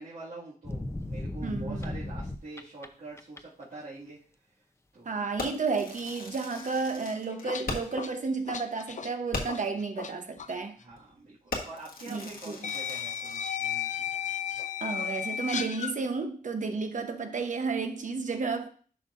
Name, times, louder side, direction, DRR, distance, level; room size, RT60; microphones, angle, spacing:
voice 1, 0.0-4.2 4.9-5.1 10.8-14.1, right 2 dB, 75° right, 2.2 m, -45 dB
sound 1, 0.6-2.9 3.2-3.6, left 1 dB, 20° left, 0.7 m, -35 dB
voice 2, 1.4-2.0 5.0-10.8 12.1-12.7 14.8-18.7, right 4 dB, 60° right, 1.0 m, -32 dB
Fireworks, 5.4-8.1 8.4-8.5 8.9-9.0 9.3-9.8 10.4-10.6 10.9-11.1 11.5-13.6, left 3 dB, 85° left, 1.5 m, -39 dB
sound 2, 7.1-10.1 10.4-10.6 11.7-11.8 12.6-16.0, left 8 dB, 60° left, 0.5 m, -34 dB
11.0 x 5.7 x 2.6 m
wide cardioid pair, 95°, 15 cm